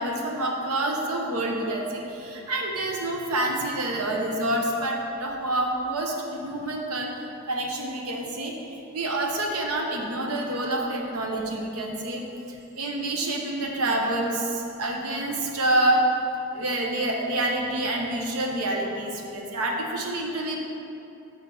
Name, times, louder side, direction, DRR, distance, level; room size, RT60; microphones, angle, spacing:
voice 1, 0.0-7.1 7.5-12.2 12.5-16.0 16.5-20.6, right 1 dB, 90° right, 0 dB, 0.9 m, -27 dB
6.4 x 4.7 x 5.3 m, 2.9 s
head